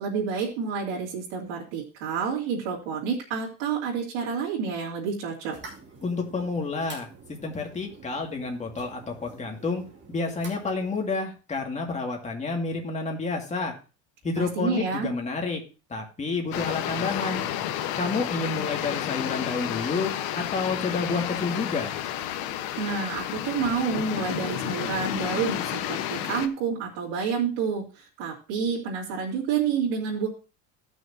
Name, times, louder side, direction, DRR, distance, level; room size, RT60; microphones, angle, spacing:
voice 1, 0.0-5.6 14.4-15.1 22.8-30.3, right 6 dB, 80° right, -6 dB, 2.8 m, -29 dB
sound 1, 5.5-11.1, right 4 dB, 30° right, 2.7 m, -47 dB
voice 2, 6.0-7.1 7.4-9.8 10.1-13.7 14.2-15.6 15.9-17.4 18.0-21.9, left 3 dB, 20° left, 1 dB, 2.2 m, -29 dB
sound 2, 16.5-26.5, left 11 dB, 75° left, 1.1 m, -31 dB
16.0 x 6.3 x 2.8 m, 0.33 s
cardioid pair, 125°, 36 cm